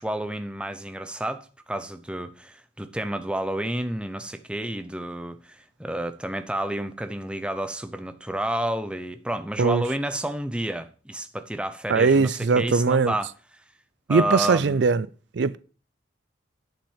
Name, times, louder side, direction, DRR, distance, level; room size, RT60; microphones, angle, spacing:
voice 1, 0.0-13.3 14.1-14.8, right 1 dB, 5° right, 0.7 m, -30 dB
voice 2, 11.9-13.1 14.1-15.1 15.3-15.6, right 4 dB, 60° right, 0.4 m, -20 dB
10.0 x 5.9 x 7.2 m
head